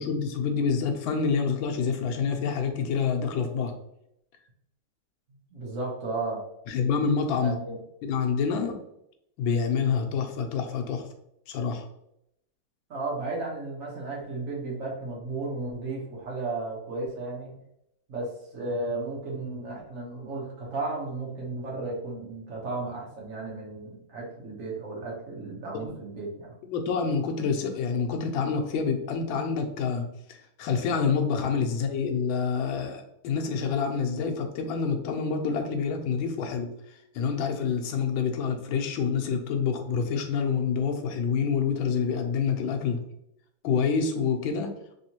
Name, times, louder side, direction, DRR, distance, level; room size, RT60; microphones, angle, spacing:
voice 1, 0.0-3.7 6.7-7.6 8.0-8.8 9.4-11.0 11.5-11.9 25.7-25.9 26.6-36.7 37.1-43.0 43.6-44.7, left 6 dB, 90° left, 4 dB, 1.4 m, -27 dB
voice 2, 5.5-6.4 7.4-7.8 12.9-17.5 18.1-26.5, right 3 dB, 50° right, -3 dB, 1.3 m, -34 dB
3.5 x 3.4 x 2.8 m, 0.79 s
omnidirectional pair, 2.1 m